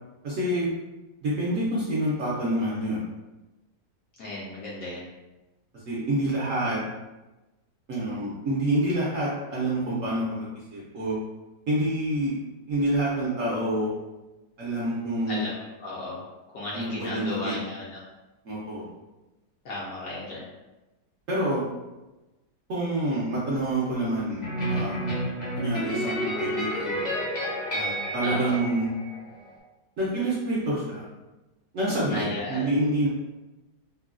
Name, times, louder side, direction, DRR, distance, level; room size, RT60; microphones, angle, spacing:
voice 1, 0.2-0.7 1.2-3.0 5.9-6.8 7.9-11.2 11.7-12.3 12.7-13.9 14.6-15.5 16.7-17.6 18.4-18.9 21.3-21.7 22.7-25.1 25.6-27.0 27.7-28.9 30.0-31.0 31.7-33.1, right 1 dB, 65° right, -7 dB, 0.8 m, -27 dB
voice 2, 4.2-5.1 15.3-16.2 16.5-18.0 19.6-20.4 28.2-28.6 32.1-32.8, left 2 dB, 65° left, -5 dB, 0.9 m, -34 dB
sound 1, 24.4-29.5, equal, 40° left, 0.6 m, -30 dB
3.8 x 2.1 x 2.4 m, 1.1 s
omnidirectional pair, 1.9 m